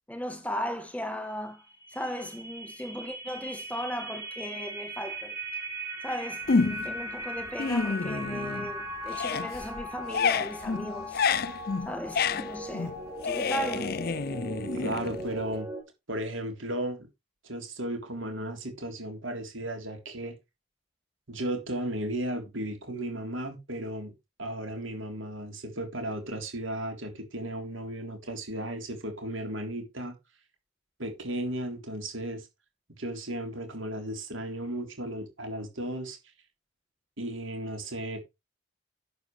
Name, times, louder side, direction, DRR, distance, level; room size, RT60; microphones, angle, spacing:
voice 1, 0.1-1.6 1.9-5.4 6.0-11.2 11.8-12.9 13.2-14.0, equal, 5° left, 1.8 m, -36 dB
sound 1, 1.6-15.8, right 1 dB, 10° right, 5.0 m, -39 dB
sound 2, 6.5-7.0 7.4-8.8 9.0-15.6, left 5 dB, 45° left, 0.5 m, -29 dB
voice 2, 14.8-15.7 16.1-17.1 17.4-20.3 21.3-24.1 24.4-30.2 31.0-32.5 33.0-36.2 37.2-38.2, right 1 dB, 75° right, 3.6 m, -35 dB
11.5 x 8.0 x 3.2 m
head